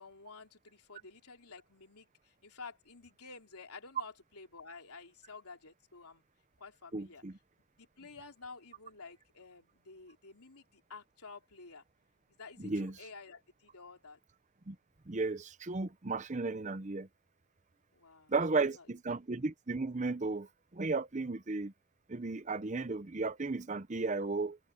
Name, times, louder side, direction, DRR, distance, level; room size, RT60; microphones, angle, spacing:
voice 1, 0.0-6.2 6.6-7.2 7.8-11.8 12.4-14.2 17.9-18.3 18.8-18.9, left 4 dB, 90° left, 3.6 m, -51 dB
voice 2, 6.9-7.4 12.6-13.0 14.7-14.8 15.1-17.1 18.3-21.7 22.1-24.6, right 3 dB, 30° right, 0.7 m, -34 dB
head